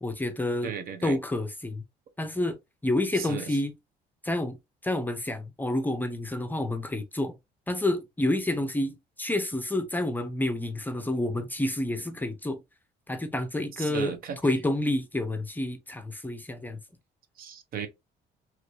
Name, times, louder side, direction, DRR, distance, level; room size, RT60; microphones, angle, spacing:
voice 1, 0.0-0.7 1.0-1.8 2.2-2.6 2.8-3.7 4.2-4.6 4.8-7.3 7.7-12.6 13.1-14.2 14.4-16.8, left 1 dB, 10° left, 0.5 m, -29 dB
voice 2, 0.6-1.2 3.2-3.5 13.8-14.4 17.4-17.9, right 7 dB, 60° right, 0.7 m, -35 dB
3.0 x 2.6 x 3.1 m
cardioid pair, 110°, 17 cm